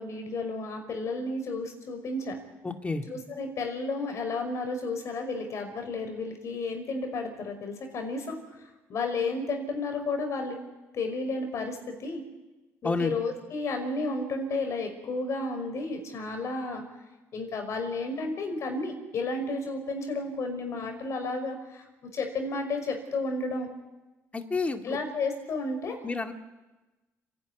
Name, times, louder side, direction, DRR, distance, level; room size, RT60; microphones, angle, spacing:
voice 1, 0.0-2.4 3.1-10.6 10.9-12.2 12.8-16.8 17.3-21.9 22.1-23.7 24.8-26.0, left 3 dB, 55° left, 5 dB, 5.6 m, -32 dB
voice 2, 2.6-3.0 12.8-13.1 24.3-25.0 26.0-26.3, left 3 dB, 25° left, 5 dB, 2.4 m, -29 dB
29.5 x 11.5 x 9.6 m, 1.1 s
cardioid pair, 80°, 6 cm